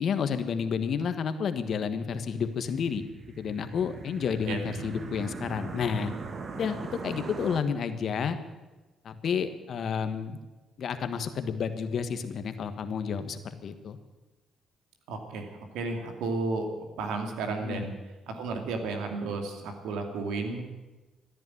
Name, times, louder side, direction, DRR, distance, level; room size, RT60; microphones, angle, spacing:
voice 1, 0.0-3.0 3.4-6.1 6.5-6.8 7.0-8.4 9.0-10.4 10.8-14.0 17.6-17.8, left 6 dB, 60° left, 10 dB, 1.4 m, -30 dB
sound 1, 2.4-7.6, right 4 dB, 45° right, 1.8 m, -40 dB
voice 2, 4.5-4.8 15.1-17.9 18.3-20.6, right 3 dB, 90° right, 5 dB, 2.6 m, -33 dB
14.5 x 10.5 x 9.5 m, 1.2 s
cardioid pair, 90°, 0 cm